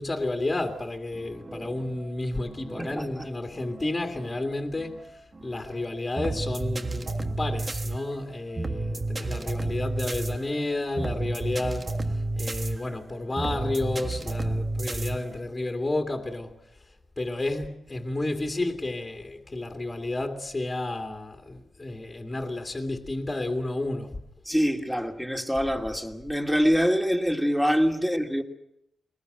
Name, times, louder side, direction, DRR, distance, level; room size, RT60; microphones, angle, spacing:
voice 1, 0.0-16.6 17.2-24.2, left 2 dB, 25° left, 2.3 m, -31 dB
sound 1, 1.1-15.4, right 2 dB, 30° right, 1.4 m, -32 dB
voice 2, 2.8-3.2 24.4-28.4, equal, ahead, 2.6 m, -25 dB
22.0 x 20.0 x 8.0 m
cardioid pair, 105°, 0 cm